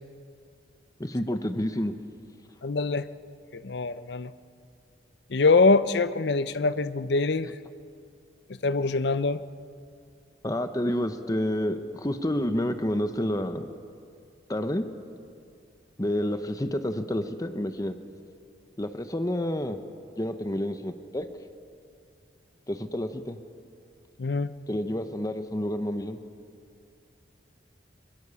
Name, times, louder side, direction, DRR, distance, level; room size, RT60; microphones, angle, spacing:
voice 1, 1.0-1.9 10.4-13.7 14.5-14.9 16.0-17.9 18.8-19.8 20.2-21.3 22.7-23.4 24.7-26.2, left 1 dB, 20° left, 9 dB, 0.8 m, -29 dB
voice 2, 2.6-3.1 3.5-4.3 5.3-7.5 8.6-9.4 24.2-24.5, left 3 dB, 65° left, 14 dB, 0.6 m, -24 dB
22.5 x 21.0 x 7.0 m, 2.4 s
head